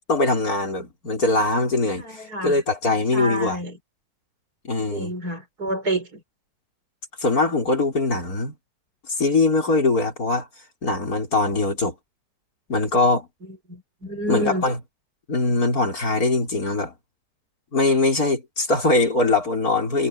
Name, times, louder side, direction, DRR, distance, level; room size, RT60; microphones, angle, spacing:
voice 1, 0.1-3.6 4.6-5.1 7.2-8.5 9.2-10.5 10.8-11.9 12.7-13.3 14.3-14.8 15.3-16.9 17.7-20.1, left 3 dB, 50° left, 5.2 m, -22 dB
voice 2, 2.0-2.6 3.1-3.8 4.9-6.2 13.7-14.6, right 1 dB, 55° right, 7.2 m, -28 dB
omnidirectional pair, 2.0 m